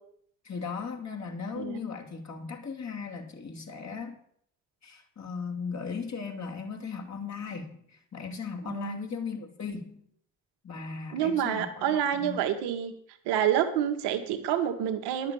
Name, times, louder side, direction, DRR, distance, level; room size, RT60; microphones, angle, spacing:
voice 1, 0.4-4.2 4.8-10.0 10.6-12.4, left 5 dB, 40° left, 1 dB, 2.7 m, -37 dB
voice 2, 8.7-9.1 11.1-12.9 13.3-15.3, right 9 dB, 75° right, 7 dB, 1.4 m, -28 dB
11.0 x 6.6 x 7.1 m, 0.65 s
hypercardioid pair, 45°, 41 cm